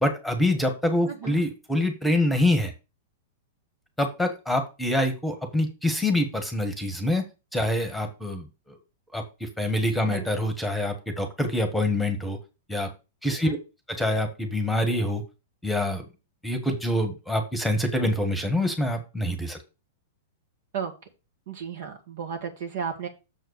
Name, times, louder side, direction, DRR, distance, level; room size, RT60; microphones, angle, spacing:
voice 1, 0.0-2.7 4.0-7.2 7.5-8.8 9.1-12.4 12.7-12.9 13.2-13.6 13.9-15.2 15.6-16.0 16.4-19.6, left 1 dB, 5° left, 6 dB, 1.7 m, -25 dB
voice 2, 1.1-1.4 10.1-10.3 13.4-13.6 20.7-20.9 21.5-23.1, right 7 dB, 55° right, 5 dB, 2.0 m, -33 dB
7.0 x 4.5 x 6.6 m, 0.29 s
figure-of-eight pair, 100°, 0 cm